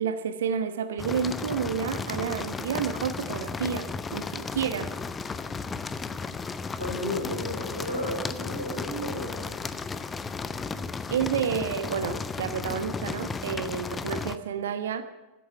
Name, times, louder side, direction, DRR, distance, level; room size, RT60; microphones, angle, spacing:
voice 1, 0.0-4.9 11.1-15.0, right 7 dB, 60° right, 11 dB, 1.0 m, -30 dB
sound 1, 1.0-14.4, left 4 dB, 15° left, 0.6 m, -34 dB
voice 2, 6.8-9.6, left 1 dB, 90° left, -3 dB, 6.4 m, -33 dB
13.0 x 8.4 x 9.2 m, 1.1 s
figure-of-eight pair, 90°, 0 cm